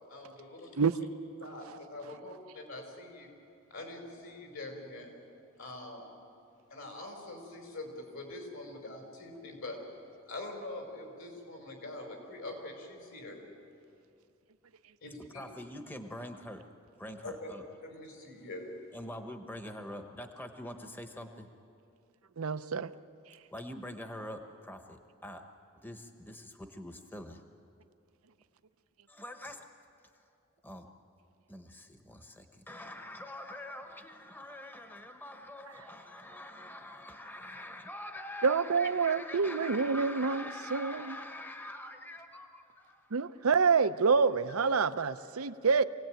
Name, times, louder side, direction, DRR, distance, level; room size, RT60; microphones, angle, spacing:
voice 1, 0.1-1.1 1.4-1.6 1.9-3.3 3.7-5.1 5.6-6.1 6.7-9.8 10.2-13.4 15.0-15.2 17.2-17.5 17.8-18.7, left 2 dB, 70° left, 5.0 m, -44 dB
voice 2, 15.3-16.7 17.0-17.6 18.9-21.5 23.5-25.4 25.8-27.4 29.1-29.7 30.1-30.3 30.6-30.9 31.5-43.5 44.5-44.8 45.2-45.8, left 1 dB, 10° left, 1.1 m, -45 dB
voice 3, 22.4-22.9 38.4-40.4 40.7-41.1 43.1-45.8, right 5 dB, 80° right, 0.7 m, -27 dB
26.0 x 17.5 x 9.1 m
head